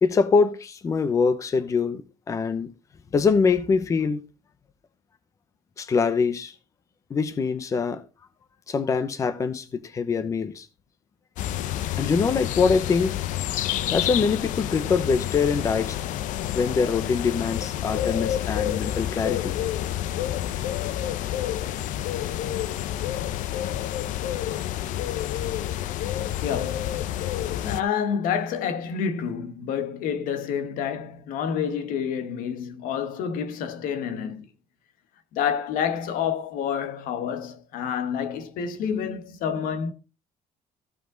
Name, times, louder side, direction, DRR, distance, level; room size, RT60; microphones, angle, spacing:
voice 1, 0.0-2.0 2.3-2.7 3.1-4.2 5.8-6.5 7.1-8.0 8.7-10.7 12.0-13.2 13.9-16.0 16.5-19.5, left 5 dB, 25° left, 0.7 m, -24 dB
sound 1, 11.4-27.8, left 12 dB, 70° left, 0.6 m, -29 dB
voice 2, 25.5-26.1 26.4-27.0 27.5-34.5 35.3-39.9, left 7 dB, 85° left, 1.4 m, -29 dB
15.0 x 5.5 x 3.8 m
cardioid pair, 175°, 14 cm